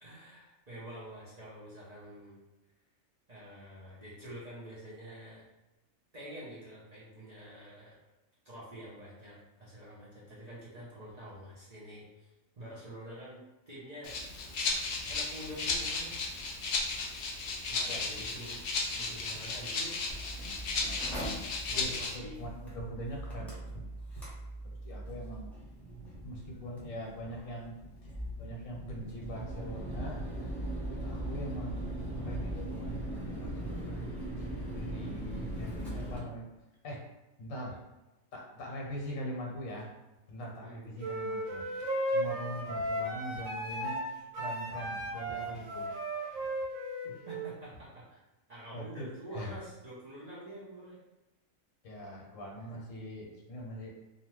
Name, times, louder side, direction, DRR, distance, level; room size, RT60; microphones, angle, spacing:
voice 1, 0.0-2.4 3.3-5.4 6.1-7.9 8.4-12.3 12.6-13.4 13.7-14.2 15.1-16.3 17.6-18.6 18.9-20.0 21.7-22.4 40.6-40.9 47.0-48.2 48.5-51.0 52.7-52.8, right 1 dB, 40° right, -9 dB, 0.7 m, -47 dB
Rattle (instrument), 14.0-22.1, left 3 dB, 60° left, 0.6 m, -35 dB
voice 2, 17.9-18.2 21.7-23.8 24.1-24.2 24.6-25.5 26.2-30.3 30.9-34.0 34.4-36.4 36.8-37.0 37.4-37.8 38.3-39.9 40.3-44.0 44.3-45.9 48.7-49.5 51.8-53.9, equal, 80° left, -2 dB, 1.1 m, -42 dB
Mechanical fan, 20.1-36.2, right 1 dB, ahead, 0.5 m, -40 dB
sound 1, 41.0-47.5, right 1 dB, 90° right, 1.0 m, -35 dB
2.8 x 2.2 x 3.0 m, 1.0 s
omnidirectional pair, 1.4 m